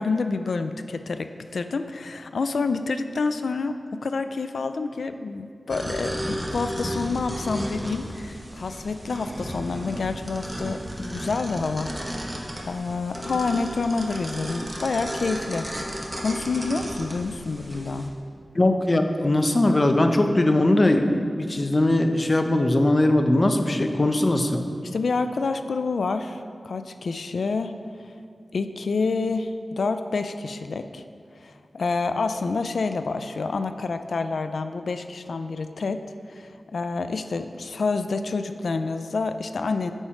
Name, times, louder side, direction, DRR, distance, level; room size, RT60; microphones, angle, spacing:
voice 1, 0.0-11.9 12.2-15.7 16.2-18.1 24.8-27.7 28.0-28.1 28.5-31.0 31.4-36.0 36.3-39.9, left 4 dB, 90° left, 9 dB, 0.3 m, -28 dB
sound 1, 5.7-18.1, equal, 15° right, 1.0 m, -34 dB
voice 2, 18.5-24.6, left 1 dB, 35° left, 6 dB, 0.6 m, -20 dB
8.9 x 4.4 x 5.7 m, 2.3 s
wide cardioid pair, 90°, 0 cm